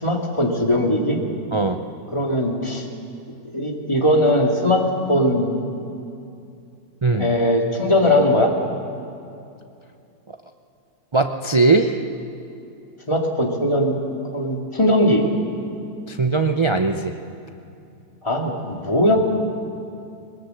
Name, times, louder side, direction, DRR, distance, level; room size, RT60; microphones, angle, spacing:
voice 1, 0.0-1.2 2.1-2.9 3.5-4.8 5.1-5.5 7.1-8.5 13.1-14.0 14.3-15.3 18.2-19.2, left 1 dB, 20° left, 0 dB, 2.3 m, -19 dB
voice 2, 11.1-12.0 16.1-17.1, right 3 dB, 45° right, 5 dB, 0.3 m, -19 dB
21.5 x 20.5 x 7.8 m, 2.6 s
omnidirectional pair, 1.7 m